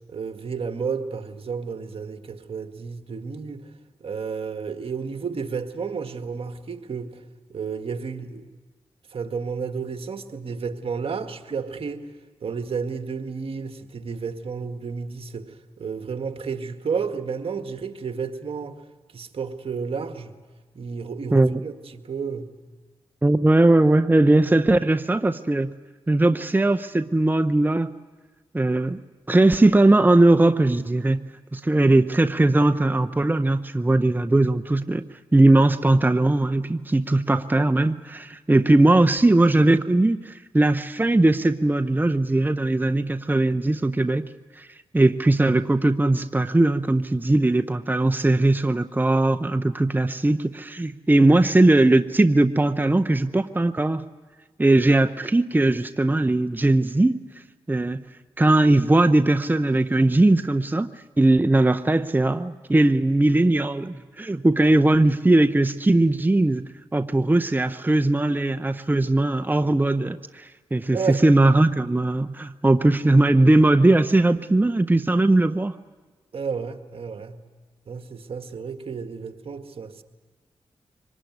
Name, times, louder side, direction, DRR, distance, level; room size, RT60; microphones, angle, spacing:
voice 1, 0.1-3.7 4.0-7.2 7.5-8.5 9.1-12.1 12.4-18.8 19.1-20.4 20.8-22.5 70.9-71.2 76.3-77.4 77.9-80.0, right 5 dB, 60° right, 7 dB, 1.8 m, -31 dB
voice 2, 23.2-25.7 26.1-27.9 28.5-29.0 29.3-31.2 31.5-35.0 35.3-44.3 44.6-44.7 44.9-54.0 54.6-57.2 57.7-58.0 58.4-60.9 61.2-66.6 66.9-75.7, right 2 dB, 20° right, 11 dB, 0.8 m, -19 dB
24.5 x 20.0 x 9.4 m, 1.3 s
supercardioid pair, 40°, 11 cm